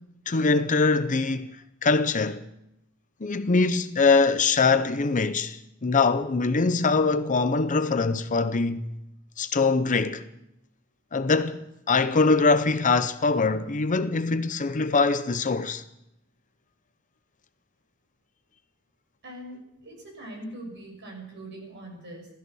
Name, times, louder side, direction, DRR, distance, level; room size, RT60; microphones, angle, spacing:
voice 1, 0.3-2.4 3.2-8.9 9.4-10.2 11.1-15.8, left 4 dB, 35° left, 0.7 m, -23 dB
voice 2, 19.2-22.3, right 1 dB, 55° right, 6.5 m, -41 dB
16.0 x 14.0 x 6.3 m
head